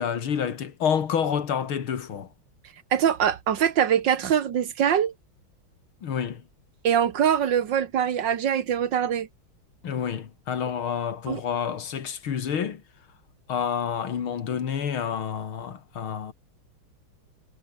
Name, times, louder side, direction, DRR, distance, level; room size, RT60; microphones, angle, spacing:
voice 1, 0.0-2.3 6.0-6.4 9.8-12.8 13.5-16.3, left 7 dB, 80° left, 2.7 m, -28 dB
voice 2, 2.9-5.1 6.8-9.3 11.3-11.4, right 9 dB, 65° right, 1.8 m, -23 dB
omnidirectional pair, 2.3 m